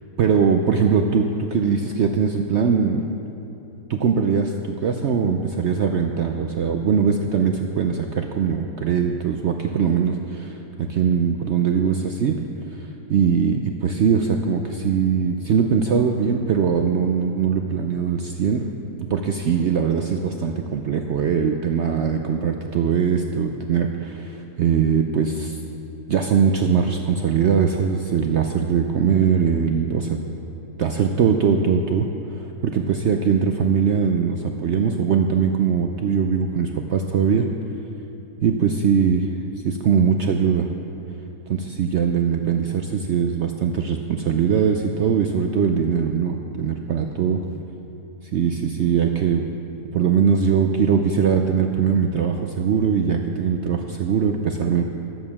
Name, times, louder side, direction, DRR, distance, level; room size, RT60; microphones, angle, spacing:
voice 1, 0.2-3.1 3.9-12.4 13.1-18.7 19.0-25.6 26.1-30.2 30.8-37.5 38.4-39.3 39.6-40.7 41.5-47.4 48.3-49.5 49.9-54.8, right 6 dB, 75° right, 4 dB, 0.6 m, -21 dB
10.5 x 7.7 x 7.0 m, 2.9 s
omnidirectional pair, 1.8 m